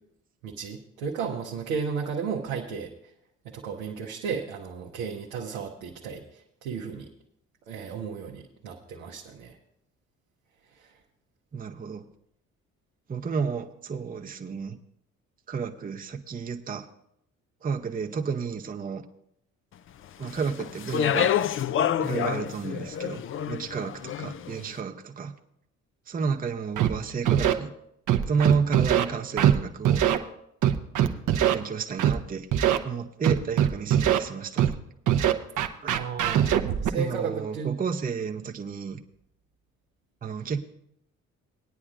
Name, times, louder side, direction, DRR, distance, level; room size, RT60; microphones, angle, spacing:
voice 1, 0.4-2.9 3.4-7.1 7.7-9.6 10.7-10.9 24.6-24.7 28.3-28.5 35.9-36.5 36.8-37.8, right 6 dB, 85° right, -2 dB, 1.0 m, -34 dB
voice 2, 11.5-12.0 13.1-14.8 15.5-16.9 17.6-19.0 20.2-21.3 22.0-25.3 26.1-27.7 28.3-30.0 31.5-32.5 32.8-34.8 35.8-36.0 37.0-39.0 40.2-40.6, right 5 dB, 20° right, 4 dB, 0.7 m, -31 dB
Speech, 20.2-24.6, left 9 dB, 35° left, 0.4 m, -28 dB
Scratching (performance technique), 26.8-26.9 27.3-27.5 28.1-29.0 29.4-29.6 29.9-30.2 30.6-31.5 32.0-32.1 32.5-32.8 33.2-34.2 34.6-34.7 35.1-36.9, right 10 dB, 50° right, 0.8 m, -21 dB
19.5 x 9.7 x 2.5 m, 0.74 s
hypercardioid pair, 50°, 39 cm